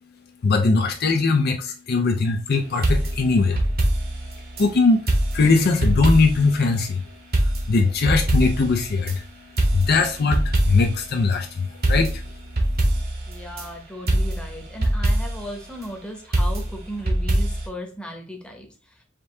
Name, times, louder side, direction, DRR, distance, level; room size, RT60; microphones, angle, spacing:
voice 1, 0.4-3.6 4.6-5.0 5.3-7.0 7.7-9.2 9.7-12.1, left 3 dB, 50° left, 5 dB, 0.5 m, -20 dB
sound 1, 2.8-4.7 5.1-6.5 6.8-6.9 7.3-9.2 9.6-11.0 11.3-11.4 11.8-13.7 14.1-15.5 16.3-17.7, right 1 dB, 50° right, 1.1 m, -23 dB
voice 2, 13.3-18.7, equal, 5° left, 1 dB, 1.0 m, -36 dB
5.1 x 2.7 x 3.2 m, 0.37 s
head